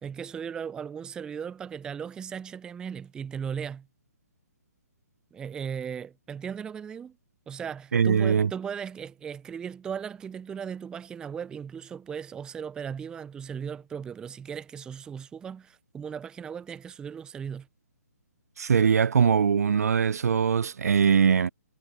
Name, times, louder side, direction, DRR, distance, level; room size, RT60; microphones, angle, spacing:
voice 1, 0.0-3.9 5.3-7.2 7.5-17.7, right 7 dB, 10° right, 0.5 m, -37 dB
voice 2, 7.9-8.5 18.6-21.5, right 6 dB, 65° right, 0.4 m, -22 dB
figure-of-eight pair, 135°, 9 cm